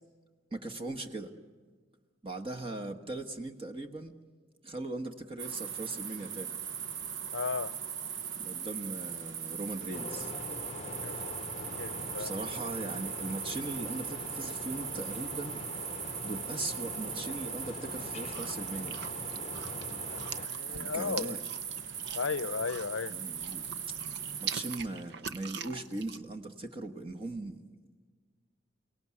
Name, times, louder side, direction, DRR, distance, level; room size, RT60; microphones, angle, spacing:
voice 1, 0.5-1.3 2.2-4.1 4.6-6.6 8.4-10.3 11.6-15.6 16.2-19.0 20.7-21.4 23.1-24.0 24.4-27.6, right 2 dB, 30° right, 1.3 m, -39 dB
sound 1, 5.4-24.8, right 8 dB, 75° right, 1.1 m, -39 dB
voice 2, 7.3-7.7 10.9-12.4 20.1-21.3 22.1-23.2, left 5 dB, 90° left, 0.7 m, -36 dB
sound 2, 9.9-20.5, left 3 dB, 35° left, 0.7 m, -43 dB
sound 3, 18.3-23.1 23.4-26.2, right 7 dB, 60° right, 0.8 m, -43 dB
29.5 x 18.5 x 9.7 m
head